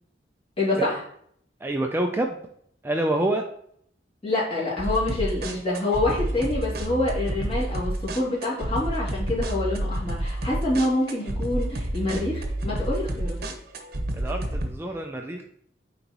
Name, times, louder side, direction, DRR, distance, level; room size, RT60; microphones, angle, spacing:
voice 1, 0.6-1.0 4.2-13.4, left 2 dB, 30° left, -6 dB, 2.6 m, -26 dB
voice 2, 1.6-2.4 2.8-3.4 14.1-15.4, right 1 dB, 15° right, 3 dB, 0.4 m, -27 dB
sound 1, 4.8-14.7, right 1 dB, 55° right, 0.9 m, -29 dB
9.0 x 4.0 x 3.0 m, 0.66 s
head